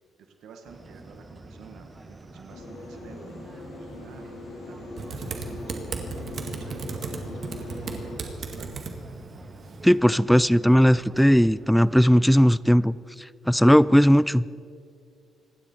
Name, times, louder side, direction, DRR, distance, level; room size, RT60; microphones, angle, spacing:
voice 1, 0.2-3.3 3.8-4.3 4.6-6.2 6.6-8.8, right 6 dB, 75° right, 5 dB, 1.5 m, -50 dB
sound 1, 0.6-12.0, right 2 dB, 25° right, 1.5 m, -47 dB
sound 2, 2.5-8.2, left 2 dB, 90° left, 4.6 m, -41 dB
Typing, 5.0-10.0, right 4 dB, 55° right, 2.0 m, -36 dB
voice 2, 9.8-13.0 13.5-14.5, equal, ahead, 19 dB, 0.3 m, -18 dB
27.0 x 11.5 x 4.4 m, 2.3 s
cardioid pair, 90°, 0 cm